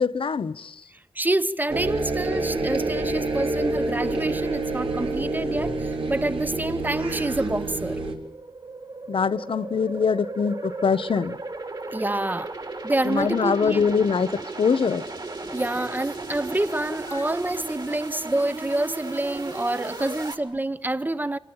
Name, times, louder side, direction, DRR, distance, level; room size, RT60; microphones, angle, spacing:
voice 1, 0.0-0.8 9.1-11.4 13.0-15.0 17.1-17.2, left 6 dB, 80° left, 0.8 m, -23 dB
voice 2, 0.9-8.0 11.9-12.6 12.8-13.8 15.5-21.4, right 2 dB, 20° right, 0.9 m, -27 dB
sound 1, 1.7-8.1, right 2 dB, 90° right, 3.2 m, -27 dB
sound 2, 5.6-20.3, right 2 dB, 55° right, 3.4 m, -36 dB
26.0 x 17.5 x 8.8 m
wide cardioid pair, 65°, 9 cm